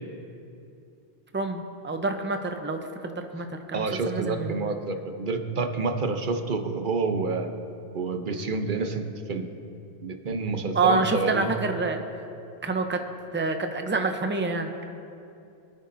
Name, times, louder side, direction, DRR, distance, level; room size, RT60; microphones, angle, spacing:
voice 1, 1.3-4.7 10.7-12.0 12.6-13.0 13.3-14.7, right 3 dB, 15° right, 5 dB, 0.6 m, -27 dB
voice 2, 3.7-7.5 7.9-9.5 10.0-11.5, right 4 dB, 50° right, 6 dB, 1.0 m, -28 dB
24.0 x 9.3 x 2.7 m, 2.6 s
omnidirectional pair, 1.1 m